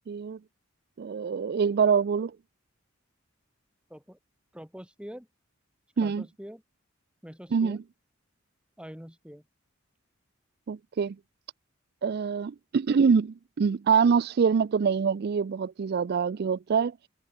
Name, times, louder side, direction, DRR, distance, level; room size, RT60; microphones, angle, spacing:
voice 1, 0.1-0.4 1.0-2.3 6.0-6.2 7.5-7.8 10.7-11.2 12.0-17.1, right 6 dB, 50° right, 0.4 m, -25 dB
voice 2, 4.5-5.3 6.0-6.6 7.2-7.8 8.8-9.4, equal, 5° right, 7.4 m, -44 dB
head